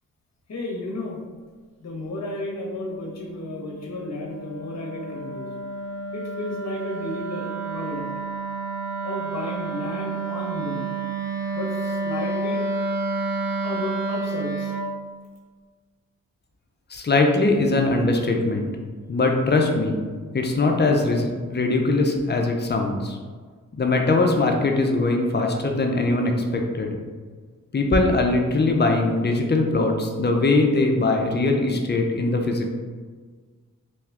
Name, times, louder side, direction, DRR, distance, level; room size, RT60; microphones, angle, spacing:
voice 1, 0.5-1.2 1.8-5.5 6.1-8.1 9.0-10.9 11.5-12.6 13.6-14.7, left 2 dB, 45° left, -1 dB, 0.9 m, -33 dB
Wind instrument woodwind instrument, 2.0-14.9, right 3 dB, 5° right, 1.0 m, -30 dB
voice 2, 16.9-18.7 19.1-20.0 20.3-23.2 23.8-27.0 27.7-32.7, left 2 dB, 30° left, 3 dB, 0.5 m, -21 dB
2.9 x 2.2 x 3.4 m, 1.5 s
cardioid pair, 50°, 36 cm